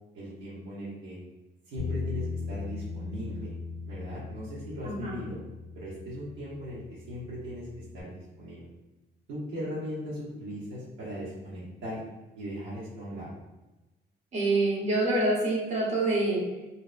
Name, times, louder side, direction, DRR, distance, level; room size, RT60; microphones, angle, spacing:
voice 1, 0.1-1.2 1.7-3.5 3.8-5.4 5.7-8.6 9.3-12.0 12.4-13.3, equal, 90° right, -10 dB, 0.9 m, -38 dB
Bass guitar, 1.8-8.0, left 4 dB, ahead, 0.8 m, -39 dB
voice 2, 4.8-5.2 14.3-16.4, right 2 dB, 40° right, -5 dB, 0.9 m, -26 dB
2.7 x 2.1 x 2.4 m, 1.0 s
cardioid pair, 130°, 18 cm